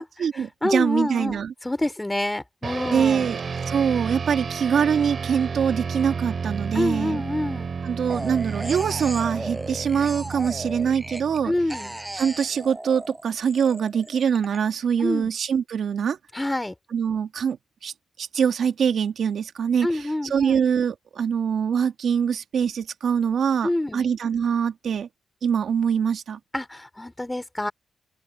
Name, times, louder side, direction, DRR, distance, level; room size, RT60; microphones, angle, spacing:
voice 1, 0.0-1.5 2.9-3.4 3.7-7.2 7.8-11.5 12.1-16.2 16.9-17.6 17.8-17.9 18.2-25.1 25.4-26.4, right 7 dB, 70° right, 1.9 m, -24 dB
voice 2, 0.6-3.3 6.7-7.7 11.4-12.0 15.0-15.3 16.3-16.7 19.8-20.5 23.6-24.0 26.5-27.7, left 1 dB, 15° left, 3.8 m, -27 dB
sound 1, 2.6-12.3, right 5 dB, 55° right, 3.1 m, -32 dB
sound 2, 8.1-11.4 11.7-14.6, right 1 dB, 10° right, 7.6 m, -36 dB
open air
supercardioid pair, 55°, 0 cm